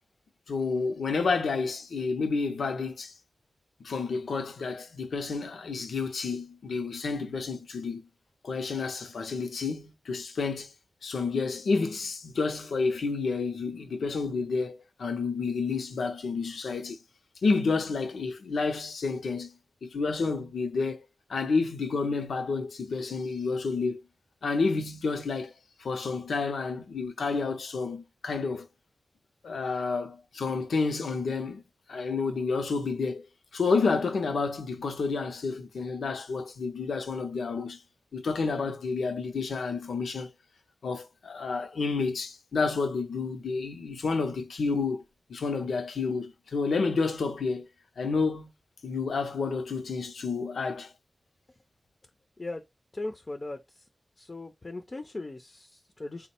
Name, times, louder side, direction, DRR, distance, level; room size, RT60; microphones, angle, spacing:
voice 1, 0.5-3.1 3.8-8.1 8.4-10.7 11.0-17.0 17.4-19.5 19.8-21.0 21.3-24.0 24.4-25.5 25.8-28.7 29.4-31.6 31.9-33.3 33.5-37.8 38.1-40.3 40.8-45.0 45.3-47.7 48.0-48.5 48.8-50.9, left 4 dB, 90° left, 0.6 m, -30 dB
voice 2, 52.9-53.9 54.2-56.3, left 2 dB, 45° left, 0.5 m, -38 dB
3.6 x 2.1 x 4.3 m
cardioid pair, 45°, 0 cm